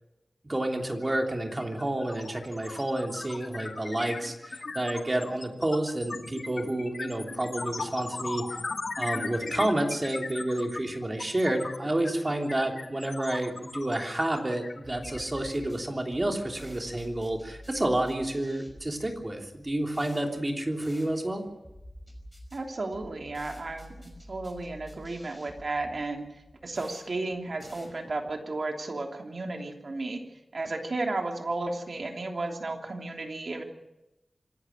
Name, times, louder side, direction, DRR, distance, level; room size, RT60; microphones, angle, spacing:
voice 1, 0.4-8.6 9.0-21.4, right 1 dB, 25° right, 3 dB, 3.1 m, -30 dB
sound 1, 1.0-1.2 1.5-15.8, left 3 dB, 65° left, 2.1 m, -38 dB
sound 2, 14.8-28.4, equal, 5° right, 5.7 m, -50 dB
voice 2, 22.5-26.2 26.6-30.2 30.5-33.6, right 2 dB, 60° right, 3 dB, 3.1 m, -33 dB
26.0 x 12.0 x 10.0 m, 0.95 s
wide cardioid pair, 95°, 0 cm